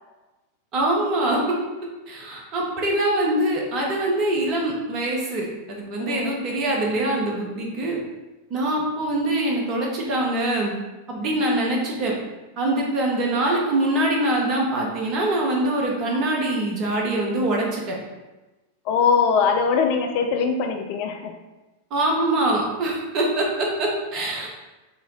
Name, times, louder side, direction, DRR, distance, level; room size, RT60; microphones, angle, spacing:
voice 1, 0.7-1.6 2.1-8.0 8.5-10.7 11.1-12.1 12.6-18.0 21.9-24.5, right 1 dB, 35° right, -1 dB, 0.9 m, -24 dB
voice 2, 18.9-21.3, left 5 dB, 45° left, 4 dB, 0.4 m, -21 dB
4.3 x 2.2 x 3.8 m, 1.1 s
figure-of-eight pair, 90°, 0 cm